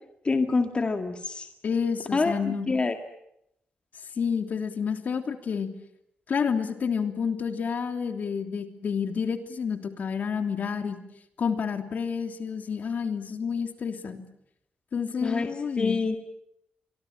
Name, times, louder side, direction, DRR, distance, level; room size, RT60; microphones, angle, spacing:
voice 1, 0.2-1.5 2.1-3.0 15.2-15.5 15.8-16.2, left 3 dB, 30° left, 6 dB, 2.0 m, -26 dB
voice 2, 1.6-2.7 4.2-5.7 6.3-11.0 11.4-14.2 14.9-16.0, left 6 dB, 55° left, 7 dB, 3.1 m, -29 dB
25.5 x 24.0 x 9.0 m, 0.78 s
cardioid pair, 105°, 3 cm